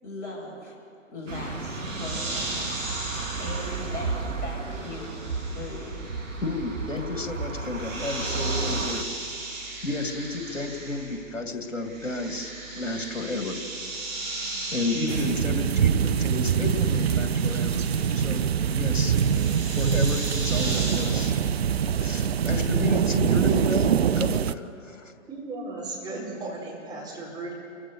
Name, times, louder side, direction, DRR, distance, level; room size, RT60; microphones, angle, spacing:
voice 1, 0.0-0.7 1.1-2.8 3.1-6.0, left 2 dB, 25° left, -4 dB, 6.5 m, -39 dB
sound 1, 1.3-9.0, right 4 dB, 80° right, 1.9 m, -33 dB
sound 2, 1.7-11.4 11.6-21.4, right 2 dB, 35° right, 6.9 m, -37 dB
voice 2, 6.4-9.0 9.8-13.6 14.7-17.9 18.1-19.2 19.7-21.4 21.9-25.1, left 3 dB, 75° left, 5 dB, 2.6 m, -32 dB
sound 3, 15.1-24.5, right 8 dB, 55° right, 0.6 m, -24 dB
voice 3, 25.3-27.5, right 2 dB, 10° right, -4 dB, 4.7 m, -36 dB
28.5 x 15.5 x 6.8 m, 2.7 s
figure-of-eight pair, 120°, 38 cm